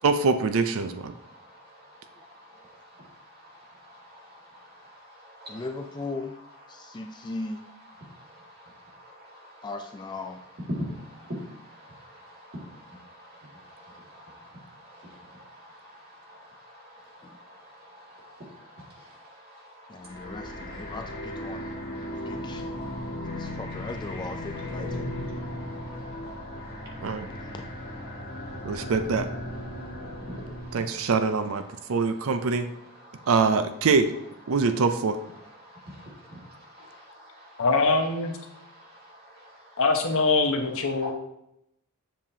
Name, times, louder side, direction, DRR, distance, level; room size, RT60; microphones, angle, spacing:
voice 1, 0.0-1.1 27.0-27.3 28.6-29.3 30.7-31.6 31.9-32.7 33.3-34.1 34.5-35.2, right 4 dB, 65° right, 10 dB, 0.5 m, -24 dB
voice 2, 1.3-1.6 2.6-2.7 2.9-3.0 3.5-4.4 4.7-5.6 6.8-6.9 8.0-9.6 10.8-20.3 21.5-23.5 25.5-26.6 26.9-27.0 27.2-27.3 28.3-28.4 29.7-30.8 35.6-37.5 38.8-39.6 41.0-41.1, equal, 45° right, -3 dB, 2.2 m, -46 dB
voice 3, 5.5-6.4 6.7-7.6 9.6-10.4 17.2-17.4 19.9-21.7 22.2-22.7 23.3-25.1 27.3-27.6, left 3 dB, 20° left, 5 dB, 0.4 m, -38 dB
sound 1, 20.0-30.8, left 1 dB, 40° left, 2.0 m, -36 dB
voice 4, 37.6-38.3 39.8-41.1, left 3 dB, 65° left, 3 dB, 1.1 m, -23 dB
7.3 x 7.3 x 2.8 m, 0.80 s
head